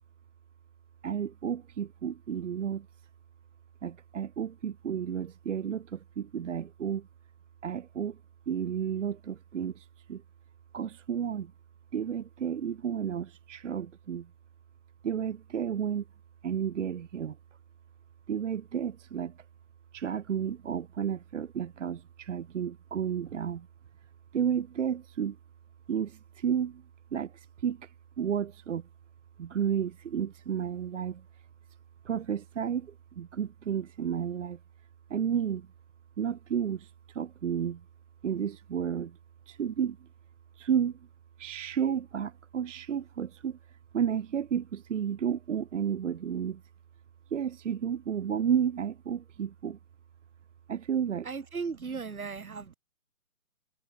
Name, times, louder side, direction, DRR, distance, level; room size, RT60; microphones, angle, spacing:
voice 1, 1.0-2.9 3.8-7.1 7.6-8.2 8.5-10.2 10.7-11.5 11.9-14.3 15.0-16.1 16.4-17.4 18.3-19.4 19.9-23.7 24.3-25.4 25.9-26.8 27.1-28.9 29.4-31.3 32.0-34.6 35.1-35.7 36.2-37.8 38.2-39.2 39.5-40.1 40.6-41.1 41.4-46.6 47.3-49.8 50.7-51.3 51.9-52.0 52.4-52.7, right 8 dB, 60° right, 0.5 m, -32 dB
voice 2, 51.3-52.7, right 5 dB, 90° right, 0.8 m, -36 dB
figure-of-eight pair, 135°, 42 cm